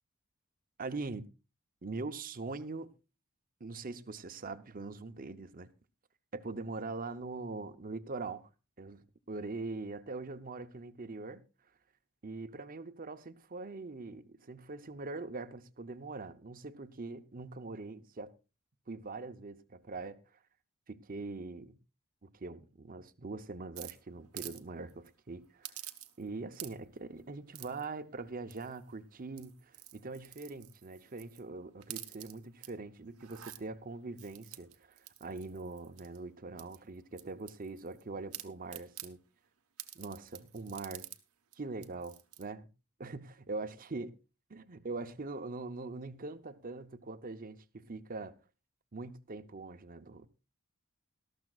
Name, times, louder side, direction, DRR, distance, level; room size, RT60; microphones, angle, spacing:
voice 1, 0.8-1.3 1.8-2.9 3.6-5.7 6.3-8.5 8.8-11.4 12.2-18.3 18.9-20.2 20.9-21.7 22.2-25.8 26.2-39.2 39.9-41.1 41.6-42.7 43.0-44.1 44.5-48.3 48.9-50.3, right 3 dB, 40° right, 0.8 m, -42 dB
sound 1, 23.8-24.6 24.9-25.1 25.6-26.3 26.5-27.0 27.5-27.9 28.5-28.9 29.3-31.4 31.8-32.7 33.1-33.6 34.2-36.2 36.6-38.0 38.3-39.1 39.8-41.2 41.5-41.6 41.8-42.4, right 14 dB, 90° right, 1.1 m, -48 dB
18.5 x 13.0 x 2.4 m
head